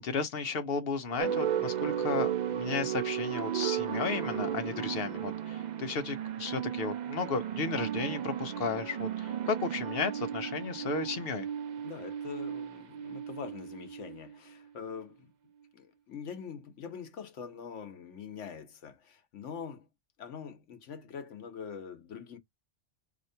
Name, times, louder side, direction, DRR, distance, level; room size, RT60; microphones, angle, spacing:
voice 1, 0.0-11.4, left 4 dB, 60° left, 0.9 m, -34 dB
sound 1, 1.2-14.6, right 9 dB, 55° right, 0.5 m, -35 dB
voice 2, 11.8-15.3 15.7-19.9 20.2-22.4, left 6 dB, 85° left, 1.2 m, -44 dB
4.2 x 2.8 x 2.6 m
omnidirectional pair, 1.2 m